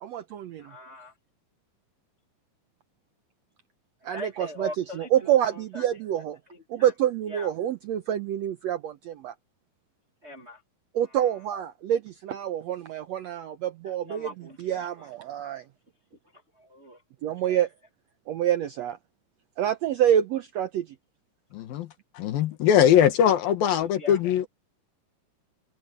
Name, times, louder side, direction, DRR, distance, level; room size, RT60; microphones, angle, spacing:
voice 1, 0.0-0.7 4.0-6.4 6.7-9.3 10.9-14.3 14.6-15.6 17.2-17.7 18.3-19.0 19.6-20.9, right 10 dB, 80° right, 1.5 m, -27 dB
voice 2, 0.6-1.1 4.1-5.1 5.5-5.8 6.1-6.2 6.5-6.9 7.3-7.5 10.2-10.6 13.8-15.1 16.6-17.0 17.4-17.6 22.8-22.9 23.2-23.3 23.7-24.2, left 1 dB, 30° right, 1.2 m, -41 dB
voice 3, 21.5-21.9 22.2-24.5, left 9 dB, 90° left, 3.3 m, -21 dB
omnidirectional pair, 4.0 m